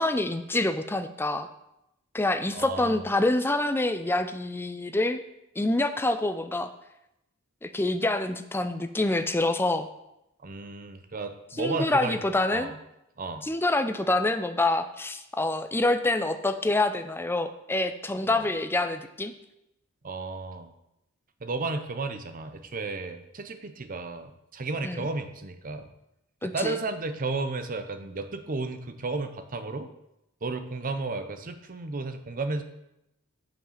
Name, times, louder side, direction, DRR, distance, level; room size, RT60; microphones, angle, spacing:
voice 1, 0.0-1.5 2.1-5.2 5.6-6.7 7.6-9.9 11.6-12.7 13.4-19.3 24.8-25.1 26.4-26.8, left 2 dB, 10° left, 9 dB, 0.4 m, -26 dB
voice 2, 2.5-3.0 10.4-12.8 13.2-13.5 18.3-18.5 20.0-20.7 21.4-25.9 26.5-29.9 30.4-32.6, right 3 dB, 40° right, 8 dB, 0.7 m, -33 dB
7.2 x 5.7 x 5.7 m, 0.85 s
head